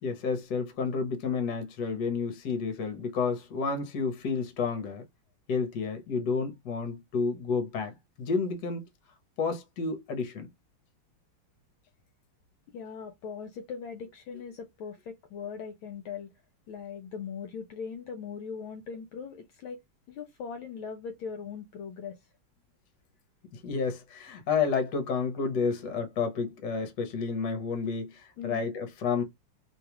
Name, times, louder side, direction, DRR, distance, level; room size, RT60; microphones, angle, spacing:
voice 1, 0.0-5.0 5.5-8.8 9.4-10.5 23.5-29.2, left 5 dB, 60° left, 1.4 m, -30 dB
voice 2, 12.7-16.3 16.7-19.8 20.1-22.3 28.4-28.6, left 6 dB, 75° left, 1.3 m, -40 dB
3.4 x 2.3 x 2.9 m
omnidirectional pair, 2.4 m